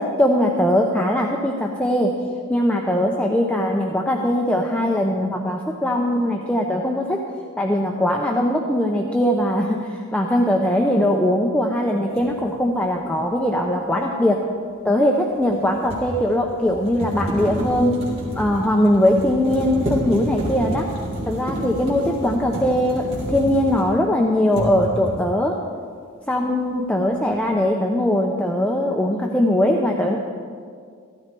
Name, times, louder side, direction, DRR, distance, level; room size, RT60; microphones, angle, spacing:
voice 1, 0.0-2.1 2.5-7.2 7.6-14.4 14.8-18.0 18.4-20.9 21.3-25.5 26.3-30.2, left 1 dB, 5° left, 0 dB, 0.7 m, -20 dB
sound 1, 12.2-12.3 15.4-24.1 24.5-25.3, equal, 30° right, 3.4 m, -29 dB
15.5 x 13.0 x 4.6 m, 2.1 s
head